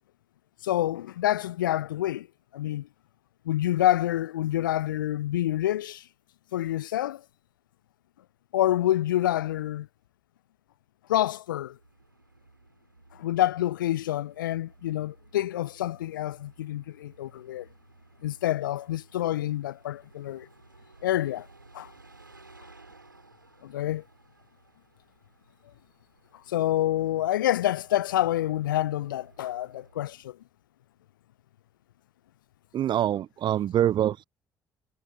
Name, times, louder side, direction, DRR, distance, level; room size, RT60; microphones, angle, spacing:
voice 1, 0.6-2.3 2.5-2.9 3.5-6.0 6.5-7.2 8.5-9.9 11.1-11.8 13.1-17.7 18.2-20.5 21.0-21.5 21.7-21.9 23.6-24.0 26.5-30.4, left 13 dB, 80° left, 0.5 m, -27 dB
Bus, 11.6-30.2, right 3 dB, 90° right, 6.1 m, -57 dB
voice 2, 32.7-34.2, right 11 dB, 45° right, 0.4 m, -25 dB
figure-of-eight pair, 45°, 11 cm